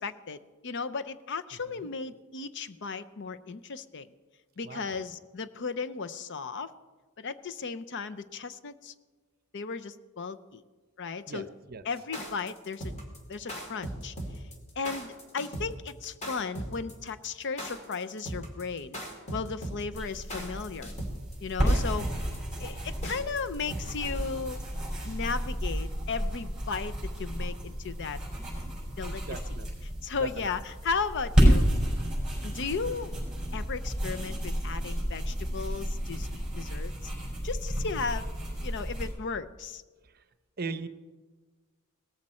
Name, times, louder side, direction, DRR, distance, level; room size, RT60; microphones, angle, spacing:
voice 1, 0.0-4.1 4.6-6.7 7.2-8.9 9.5-10.6 11.0-11.5 11.8-12.9 13.3-14.1 14.8-19.0 19.3-20.9 21.4-22.1 22.6-24.6 25.1-28.2 29.0-29.2 30.0-31.7 32.4-33.1 33.5-37.1 37.4-38.3 38.6-39.8, left 5 dB, 55° left, 13 dB, 0.6 m, -35 dB
voice 2, 4.6-5.0 11.3-11.8 21.6-21.8 29.3-29.9 30.2-30.5 40.1-40.2 40.6-40.9, right 4 dB, 45° right, 11 dB, 0.7 m, -39 dB
sound 1, 12.0-24.2, equal, 30° left, 2.4 m, -38 dB
sound 2, 19.9-39.1, equal, ahead, 5.5 m, -31 dB
18.0 x 14.0 x 4.3 m, 1.3 s
head